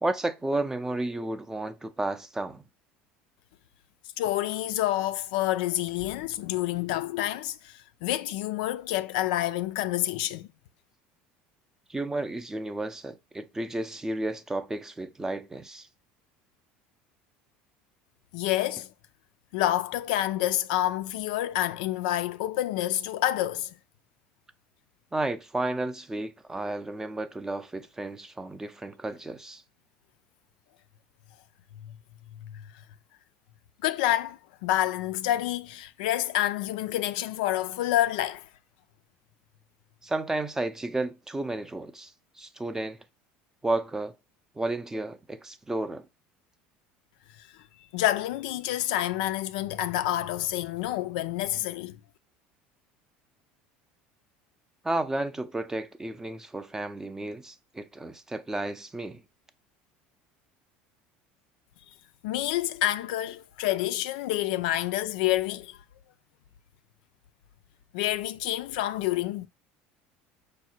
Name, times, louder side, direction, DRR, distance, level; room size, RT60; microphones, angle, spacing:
voice 1, 0.0-2.6 11.9-15.9 25.1-29.6 40.0-42.1 42.4-43.0 43.6-44.1 44.6-46.1 54.8-59.2, right 2 dB, 10° right, 0.4 m, -32 dB
voice 2, 4.2-10.5 18.3-18.9 19.5-23.8 31.7-31.9 32.4-32.7 33.8-38.5 47.4-47.5 47.9-52.0 62.2-65.8 67.9-69.5, left 14 dB, 85° left, 0.3 m, -28 dB
4.7 x 2.1 x 4.3 m
supercardioid pair, 115°, 4 cm